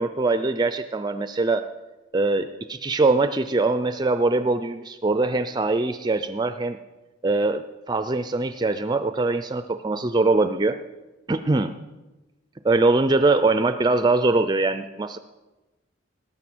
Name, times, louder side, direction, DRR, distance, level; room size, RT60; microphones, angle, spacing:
voice 1, 0.0-1.6 2.1-6.8 7.2-7.6 7.9-10.8 11.3-11.7 12.6-15.2, right 3 dB, 20° right, 10 dB, 0.4 m, -22 dB
18.5 x 7.6 x 6.1 m, 1.1 s
head